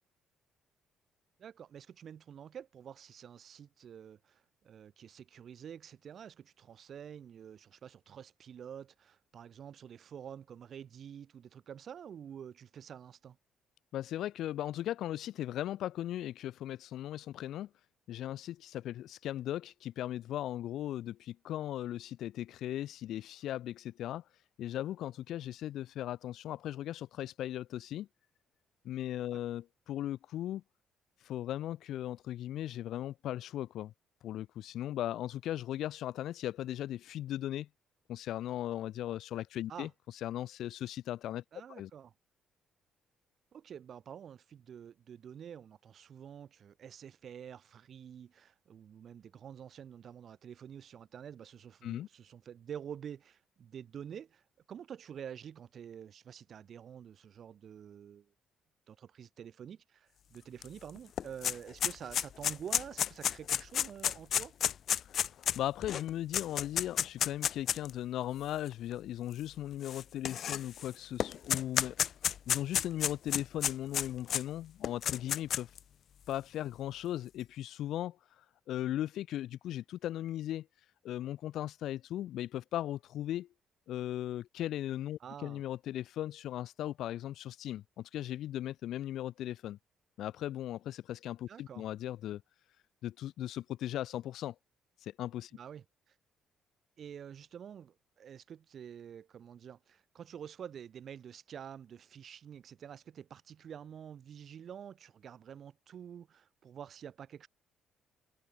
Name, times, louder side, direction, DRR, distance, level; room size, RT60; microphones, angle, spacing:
voice 1, 1.4-13.4 29.3-29.4 39.7-39.9 41.5-42.1 43.5-58.3 58.9-64.5 85.2-85.6 91.5-91.8 95.5-96.1 97.0-107.5, right 8 dB, 45° right, 5.9 m, -48 dB
voice 2, 13.9-17.7 18.1-24.2 24.6-28.1 28.8-30.6 31.2-33.9 34.2-37.7 38.1-39.9 40.2-41.4 41.7-41.9 51.8-52.1 65.0-72.0 72.5-75.7 76.3-80.7 81.0-83.5 83.9-89.8 90.2-92.4 93.0-94.5 95.0-95.5, left 12 dB, 70° left, 6.0 m, -38 dB
sound 1, 60.6-60.7 61.0-67.9 68.7-68.8 69.8-70.9 71.2-74.4 74.8-75.8, left 9 dB, 50° left, 1.6 m, -31 dB
cardioid pair, 140°, 0 cm